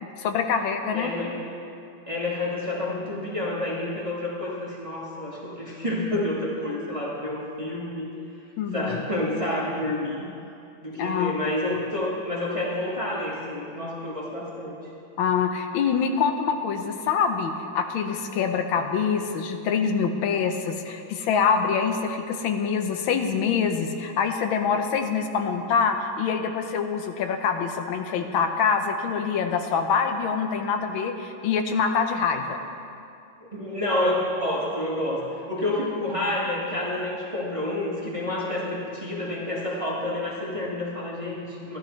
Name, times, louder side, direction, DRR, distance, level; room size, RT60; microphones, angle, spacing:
voice 1, 0.2-1.1 8.6-9.0 11.0-11.3 15.2-32.6 38.3-38.4, left 6 dB, 85° left, 6 dB, 1.5 m, -25 dB
voice 2, 0.9-1.4 2.1-8.1 8.7-10.2 10.8-14.9 33.4-35.2 35.5-41.8, left 1 dB, 20° right, -6 dB, 1.4 m, -29 dB
14.0 x 11.5 x 3.2 m, 2.6 s
omnidirectional pair, 2.2 m